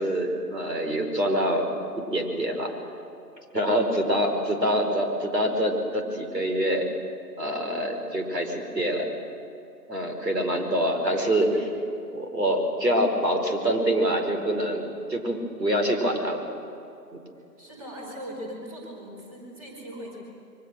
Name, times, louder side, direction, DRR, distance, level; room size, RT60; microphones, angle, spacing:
voice 1, 0.0-1.7 2.0-2.7 3.5-6.9 7.4-9.1 9.9-11.5 12.1-14.8 15.1-16.4 17.1-17.2, equal, 80° right, 3 dB, 5.0 m, -25 dB
voice 2, 17.6-20.2, equal, 20° right, -1 dB, 5.0 m, -40 dB
27.0 x 23.0 x 6.5 m, 2.7 s
figure-of-eight pair, 155°, 49 cm